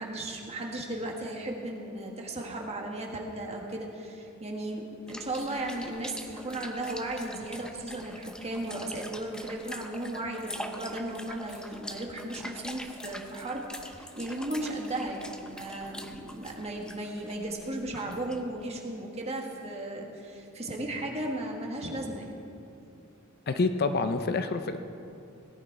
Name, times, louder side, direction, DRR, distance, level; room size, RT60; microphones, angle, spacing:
voice 1, 0.0-22.3, right 1 dB, 30° right, 0 dB, 1.6 m, -36 dB
sound 1, 5.1-18.6, equal, 5° left, 0.6 m, -44 dB
voice 2, 23.5-24.8, left 3 dB, 50° left, 8 dB, 0.6 m, -27 dB
18.0 x 11.0 x 4.6 m, 2.6 s
head